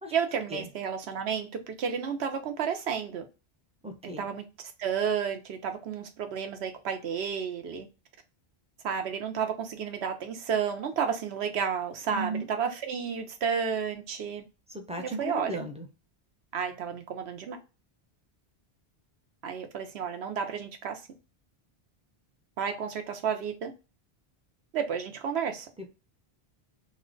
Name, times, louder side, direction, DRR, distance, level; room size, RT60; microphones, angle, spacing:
voice 1, 0.1-3.2 4.0-4.4 4.8-7.9 8.8-14.4 15.0-15.6 16.5-17.6 19.4-21.0 22.6-23.7 24.7-25.7, right 7 dB, 80° right, 1.0 m, -31 dB
voice 2, 3.8-4.3 12.1-12.5 14.7-15.9 25.8-25.9, right 1 dB, 10° right, 0.3 m, -36 dB
3.1 x 2.2 x 3.7 m
omnidirectional pair, 1.1 m